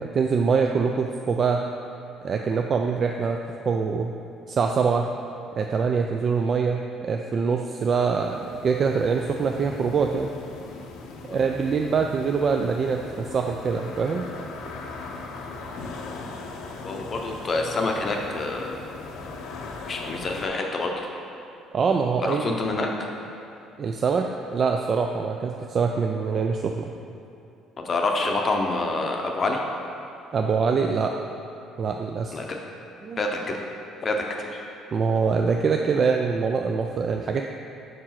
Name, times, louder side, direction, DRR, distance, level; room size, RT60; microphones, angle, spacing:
voice 1, 0.0-1.6 2.2-4.1 4.5-5.1 5.6-10.3 11.3-14.3 21.7-22.6 23.8-26.9 30.3-31.1 31.8-32.3 33.0-33.2 34.9-37.4, right 5 dB, 40° right, 2 dB, 0.3 m, -24 dB
sound 1, 7.8-20.5, left 3 dB, 80° left, 0.6 m, -39 dB
voice 2, 16.8-18.8 19.9-21.1 22.2-22.9 27.8-29.6 32.3-32.6 33.2-33.6 34.0-34.5, left 2 dB, 35° left, 1 dB, 0.6 m, -27 dB
4.8 x 4.6 x 5.7 m, 2.7 s
cardioid pair, 110°, 0 cm